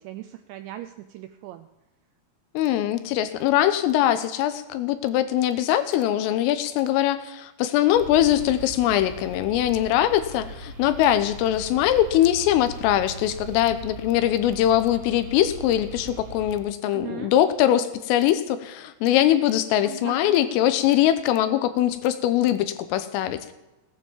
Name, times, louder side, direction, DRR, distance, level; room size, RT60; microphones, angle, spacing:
voice 1, 0.0-1.7 8.8-9.0 16.9-17.3 19.8-20.4, right 13 dB, 85° right, 9 dB, 2.5 m, -38 dB
voice 2, 2.6-23.5, left 12 dB, 85° left, 12 dB, 3.5 m, -22 dB
sound 1, 7.9-16.6, right 4 dB, 50° right, 6.4 m, -40 dB
18.0 x 9.8 x 7.3 m, 1.0 s
omnidirectional pair, 5.8 m